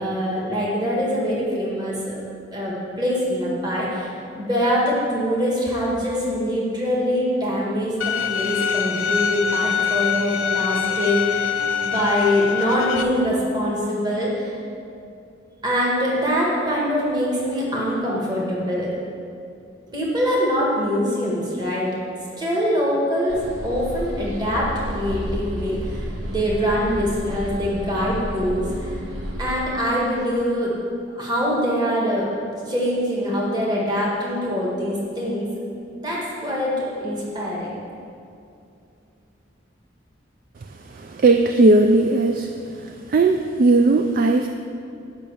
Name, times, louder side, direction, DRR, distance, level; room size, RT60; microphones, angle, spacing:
voice 1, 0.0-2.2 2.5-4.1 4.4-11.6 11.8-14.6 15.6-18.9 19.9-21.9 22.4-29.0 29.4-30.8 31.1-32.3 32.7-35.5 36.0-37.7, equal, 20° right, -5 dB, 1.6 m, -23 dB
Bowed string instrument, 8.0-13.0, left 7 dB, 85° left, 0.5 m, -24 dB
sound 1, 23.3-29.6, equal, 75° right, 1.1 m, -31 dB
voice 2, 41.0-42.5 42.8-44.5, right 2 dB, 45° right, 5 dB, 0.4 m, -17 dB
8.9 x 5.4 x 7.0 m, 2.5 s
head